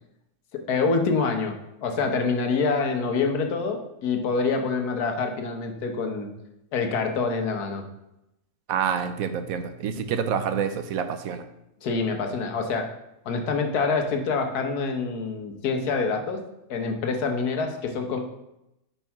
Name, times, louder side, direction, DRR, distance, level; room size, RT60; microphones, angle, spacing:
voice 1, 0.7-1.5 1.8-6.3 6.7-7.8 10.1-10.2 11.8-12.9 13.2-16.4 16.7-18.2, left 4 dB, 80° left, 5 dB, 1.5 m, -26 dB
voice 2, 8.7-11.4, right 7 dB, 70° right, 9 dB, 1.0 m, -27 dB
5.3 x 4.6 x 5.8 m, 0.86 s
omnidirectional pair, 1.6 m